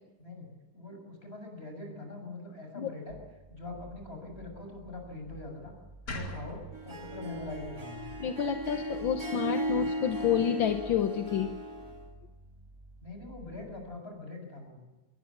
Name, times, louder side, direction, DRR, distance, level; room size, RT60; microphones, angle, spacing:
voice 1, 0.7-3.2 3.5-5.7 6.1-8.1 13.0-14.8, left 2 dB, 30° left, 4 dB, 6.9 m, -43 dB
sound 1, 3.1-14.0, right 2 dB, 15° right, 1.6 m, -52 dB
sound 2, 6.1-9.2, equal, 55° left, 3.1 m, -44 dB
Harp, 6.7-12.1, right 1 dB, 45° right, 3.5 m, -36 dB
voice 2, 8.2-11.5, left 9 dB, 70° left, 7 dB, 1.8 m, -29 dB
25.0 x 21.0 x 7.3 m, 1.2 s
omnidirectional pair, 2.2 m